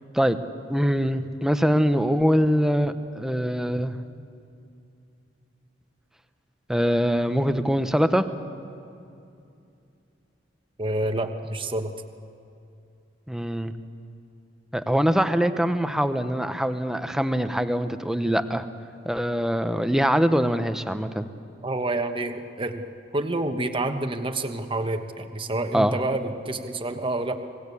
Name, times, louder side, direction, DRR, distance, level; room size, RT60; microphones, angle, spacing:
voice 1, 0.7-4.0 6.7-8.2 13.3-13.7 14.7-18.6 19.0-21.3 25.7-26.0, equal, 5° right, 9 dB, 0.8 m, -23 dB
voice 2, 10.8-11.9 21.6-22.8 23.1-27.4, right 2 dB, 30° right, 6 dB, 1.2 m, -28 dB
28.0 x 19.0 x 8.5 m, 2.6 s
head